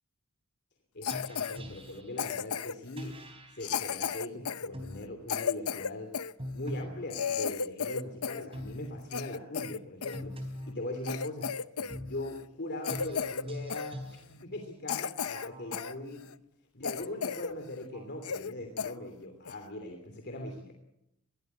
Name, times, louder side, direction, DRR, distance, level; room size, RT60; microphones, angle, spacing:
voice 1, 0.9-3.2 3.5-6.2 6.5-16.2 16.7-20.7, left 1 dB, 50° left, 4 dB, 3.0 m, -41 dB
Cough, 1.0-1.6 2.2-2.9 3.6-6.3 6.8-6.9 7.1-8.5 8.8-10.2 10.7-10.8 11.0-12.0 12.2-12.4 12.8-13.4 13.7-13.9 14.4-14.5 14.9-15.9 16.3-16.4 16.8-17.5 17.8-17.9 18.2-18.5 18.8-18.9 19.5-19.7, left 7 dB, 90° left, 0.7 m, -34 dB
sound 1, 1.1-2.2 3.0-3.8 4.7-5.1 6.4-7.1 8.5-8.9 10.1-10.9 11.9-12.3 12.9-14.2 15.4-16.0 16.8-16.9 17.9-18.2 18.8-18.9, left 1 dB, 25° right, 4.2 m, -43 dB
21.5 x 17.0 x 9.6 m, 0.83 s
head